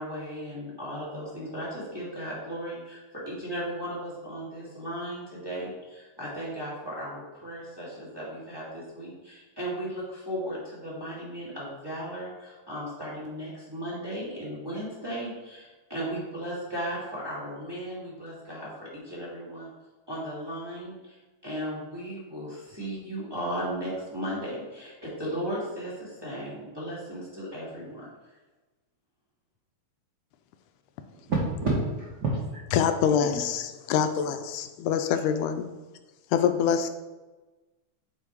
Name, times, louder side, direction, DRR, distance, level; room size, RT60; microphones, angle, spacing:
voice 1, 0.0-19.7 20.1-21.2 21.4-28.4, equal, 10° right, -8 dB, 1.9 m, -36 dB
voice 2, 31.3-32.6 33.1-33.4, right 2 dB, 75° right, -4 dB, 0.9 m, -28 dB
voice 3, 32.7-35.6 36.3-36.9, left 8 dB, 85° left, 8 dB, 2.1 m, -25 dB
8.3 x 4.5 x 4.5 m, 1.2 s
omnidirectional pair, 3.5 m